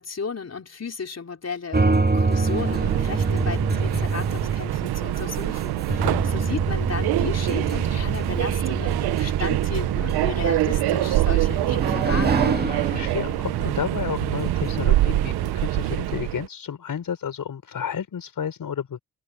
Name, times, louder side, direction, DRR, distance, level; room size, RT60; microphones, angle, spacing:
voice 1, 0.0-12.5, left 5 dB, 40° left, 4.3 m, -34 dB
sound 1, 1.7-15.9, right 3 dB, 25° right, 2.7 m, -27 dB
Subway metro underground, 2.1-16.5, right 16 dB, 80° right, 1.2 m, -25 dB
voice 2, 5.9-6.2 12.6-19.0, left 8 dB, 60° left, 5.3 m, -31 dB
hypercardioid pair, 45°, 38 cm